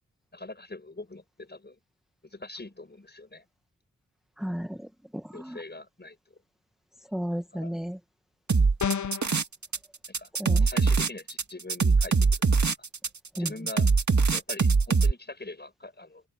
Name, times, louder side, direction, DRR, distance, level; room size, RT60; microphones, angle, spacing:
voice 1, 0.3-1.8 2.2-3.4 5.3-6.4 7.5-7.7 10.2-12.2 12.6-12.7 13.4-13.9 14.3-16.2, left 2 dB, 30° left, 7.2 m, -43 dB
voice 2, 4.4-5.6 7.1-8.0 9.3-9.4 10.4-10.7 13.4-13.5, equal, ahead, 1.2 m, -33 dB
sound 1, 8.5-9.8 10.0-15.1, right 4 dB, 60° right, 2.5 m, -22 dB
sound 2, 8.8-9.3, left 7 dB, 60° left, 0.8 m, -29 dB
open air
cardioid pair, 60°, 33 cm